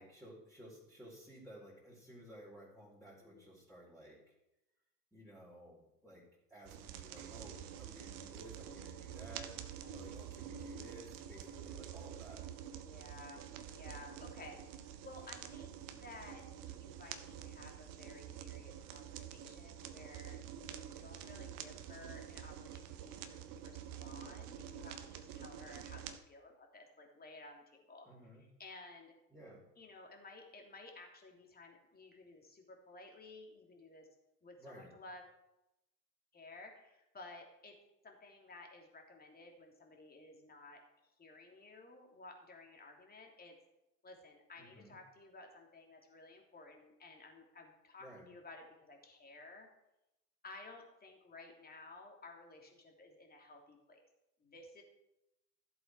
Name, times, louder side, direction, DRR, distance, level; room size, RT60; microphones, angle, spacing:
voice 1, 0.0-4.2 5.1-6.2 6.5-12.5 28.1-28.4 29.3-29.6 34.6-34.9 44.6-45.0 48.0-48.3, right 1 dB, ahead, -8 dB, 4.3 m, -55 dB
voice 2, 3.2-3.5 9.8-10.0 12.7-13.4 13.7-14.6 15.0-28.1 28.4-29.1 29.8-34.1 34.4-35.2 36.3-37.8 38.0-40.8 41.2-43.6 44.0-49.7 50.4-54.0 54.4-54.8, left 2 dB, 20° left, 1 dB, 3.0 m, -55 dB
sound 1, 6.7-26.2, right 9 dB, 40° right, 1.3 m, -48 dB
14.5 x 7.8 x 4.8 m, 0.91 s
figure-of-eight pair, 80°, 49 cm